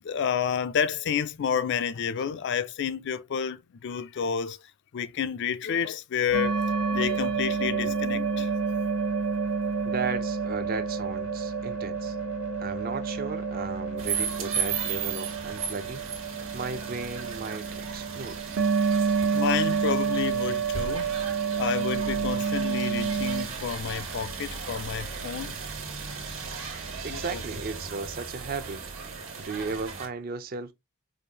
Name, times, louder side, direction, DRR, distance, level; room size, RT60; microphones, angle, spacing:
voice 1, 0.0-4.6 4.9-6.6 6.9-8.5 19.3-21.3 21.6-25.6 27.1-27.4, left 7 dB, 55° left, 0.4 m, -30 dB
sound 1, 6.3-14.1, left 4 dB, 80° left, 0.8 m, -40 dB
sound 2, 6.3-23.5, right 6 dB, 85° right, 0.8 m, -29 dB
voice 2, 9.8-12.2 12.6-16.1 16.5-18.4 26.5-26.7 27.0-28.8 29.4-30.7, right 4 dB, 45° right, 0.5 m, -35 dB
sound 3, 14.0-30.1, right 5 dB, 65° right, 1.4 m, -36 dB
5.0 x 2.5 x 2.8 m
head